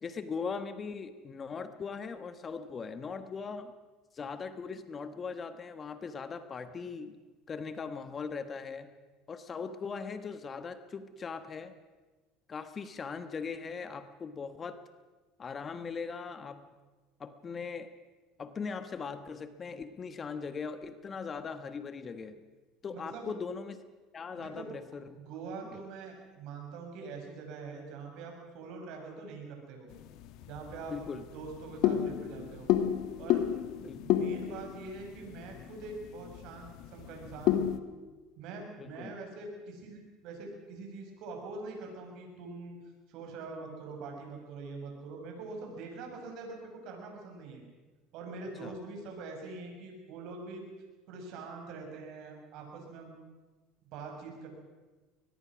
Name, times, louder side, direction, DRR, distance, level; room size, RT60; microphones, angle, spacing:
voice 1, 0.0-3.7 4.1-7.2 7.5-8.9 9.3-11.7 12.5-14.8 15.4-16.6 17.2-17.9 18.4-22.4 22.8-23.8 24.1-25.2 25.7-25.8 30.9-31.3 33.8-34.0 38.8-39.2 48.6-48.7, left 5 dB, 30° left, 11 dB, 1.4 m, -40 dB
voice 2, 22.9-23.3 24.3-24.8 25.1-29.9 30.5-31.0 31.3-32.7 33.2-33.5 33.9-37.7 38.4-42.8 43.1-47.6 48.1-50.7 51.1-53.2 53.9-54.5, right 3 dB, 65° right, 2 dB, 6.6 m, -44 dB
sound 1, 29.9-37.8, left 11 dB, 65° left, 1.5 m, -32 dB
22.5 x 20.0 x 6.2 m, 1.3 s
supercardioid pair, 100°, 0 cm